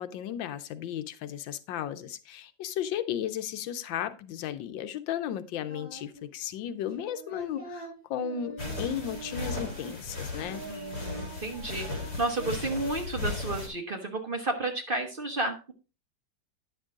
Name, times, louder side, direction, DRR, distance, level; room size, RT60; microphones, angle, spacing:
voice 1, 0.0-10.6, left 9 dB, 85° left, 1.5 m, -35 dB
Singing, 5.7-6.2 6.5-10.2 10.4-12.5, right 2 dB, 5° right, 5.2 m, -44 dB
sound 1, 8.6-13.7, left 3 dB, 55° left, 4.5 m, -36 dB
voice 2, 10.7-15.7, right 2 dB, 35° right, 1.1 m, -32 dB
10.0 x 6.4 x 3.7 m
omnidirectional pair, 2.0 m